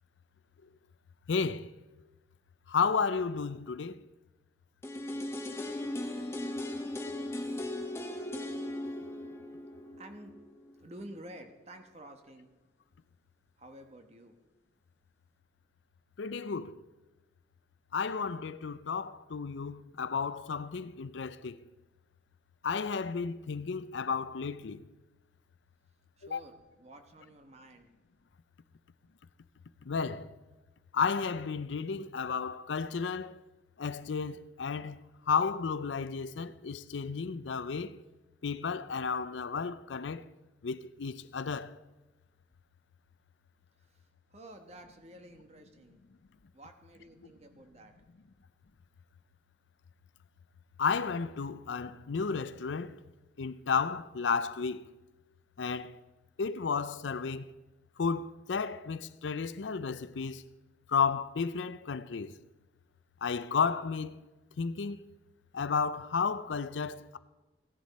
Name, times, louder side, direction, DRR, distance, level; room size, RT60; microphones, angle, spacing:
voice 1, 1.3-1.7 2.7-4.0 16.2-16.8 17.9-21.6 22.6-24.8 26.3-26.4 29.9-30.3 30.9-33.4 33.8-35.0 35.3-38.0 38.4-40.2 40.6-41.8 50.8-53.0 53.4-54.9 55.6-56.0 56.4-57.5 58.0-60.4 60.9-62.3 63.2-64.2 64.6-65.1 65.5-67.2, left 5 dB, 90° left, 0.5 m, -32 dB
sound 1, 4.8-10.7 11.0-11.1, left 1 dB, 15° left, 0.8 m, -38 dB
voice 2, 10.0-10.4 10.8-12.5 13.6-14.4 26.2-27.9 43.8-46.0 46.5-47.9, right 1 dB, 35° right, 1.2 m, -51 dB
16.0 x 10.5 x 4.2 m
head